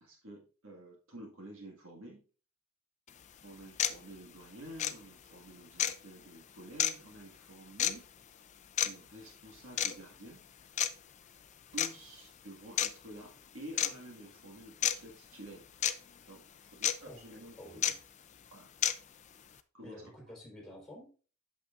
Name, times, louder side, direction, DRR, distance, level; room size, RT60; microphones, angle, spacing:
voice 1, 0.0-2.3 3.4-8.1 8.8-10.4 11.7-15.7 16.3-16.4 16.7-17.8 18.5-18.7 19.7-20.1, right 1 dB, 65° right, -1 dB, 1.8 m, -50 dB
sound 1, 3.1-3.2 3.8-4.0 4.8-4.9 5.8-5.9 6.8-6.9 7.8-7.9 8.8-8.9 9.8-9.9 10.8-10.9 11.8-11.9 12.8-12.9 13.8-13.9 14.8-14.9 15.8-15.9 16.8-16.9 17.8-17.9 18.8-18.9, left 10 dB, 35° left, 0.4 m, -28 dB
voice 2, 17.5-18.0 19.8-21.1, left 1 dB, ahead, -2 dB, 4.1 m, -50 dB
8.5 x 6.6 x 2.5 m, 0.37 s
head